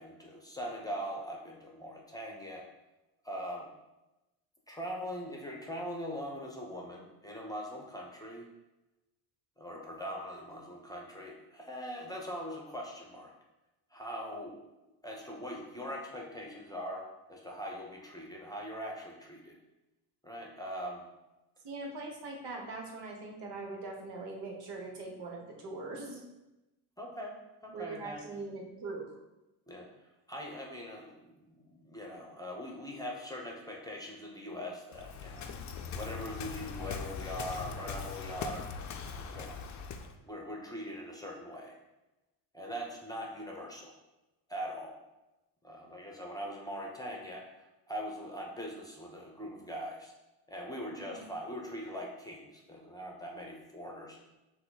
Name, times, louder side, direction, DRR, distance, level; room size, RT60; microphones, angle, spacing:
voice 1, 0.0-2.6 3.2-3.7 4.7-8.5 9.6-13.3 13.9-14.6 15.0-19.6 20.2-21.0 27.0-27.3 27.6-28.4 29.7-29.9 30.3-35.5 35.9-38.7 39.1-39.6 40.2-41.8 42.5-43.9 44.5-44.9 45.6-50.1 50.5-54.2, equal, 10° left, -1 dB, 0.9 m, -41 dB
voice 2, 21.6-26.2 27.7-29.2 50.9-51.2, right 3 dB, 65° right, 1 dB, 1.1 m, -42 dB
Waves surf, 34.9-40.2, left 5 dB, 40° left, 0.5 m, -41 dB
5.7 x 2.2 x 3.9 m, 1.0 s
supercardioid pair, 80°, 44 cm